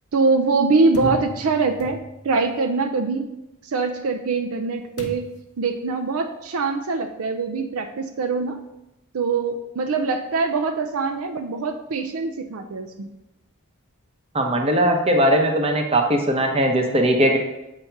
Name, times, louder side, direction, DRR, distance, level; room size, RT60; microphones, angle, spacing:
voice 1, 0.1-3.2 3.6-5.3 5.6-8.6 9.1-13.1, right 4 dB, 70° right, 7 dB, 0.5 m, -23 dB
sound 1, 0.9-2.4 5.0-5.6, left 1 dB, 85° left, 0.8 m, -34 dB
voice 2, 14.3-17.4, right 1 dB, 25° right, 3 dB, 0.8 m, -19 dB
7.8 x 2.9 x 5.7 m, 0.93 s
head